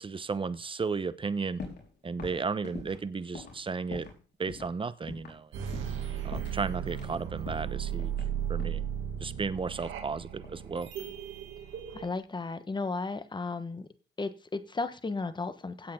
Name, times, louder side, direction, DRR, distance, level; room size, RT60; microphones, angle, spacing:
voice 1, 0.0-1.6 2.0-4.1 4.4-5.5 6.2-8.2 8.5-8.8 9.2-10.9, right 4 dB, 25° right, 15 dB, 0.9 m, -34 dB
sound 1, 1.6-1.9 2.2-4.2 4.5-4.7 5.1-5.4 5.7-6.0 6.3-7.2 7.5-8.8 9.8-10.7 11.0-11.4, left 4 dB, 55° left, 4.6 m, -44 dB
sound 2, 5.5-12.1, right 9 dB, 80° right, 2.5 m, -36 dB
voice 2, 11.9-13.9 14.2-15.9, left 3 dB, 20° left, 11 dB, 1.3 m, -34 dB
16.5 x 8.6 x 3.8 m, 0.36 s
cardioid pair, 90°, 20 cm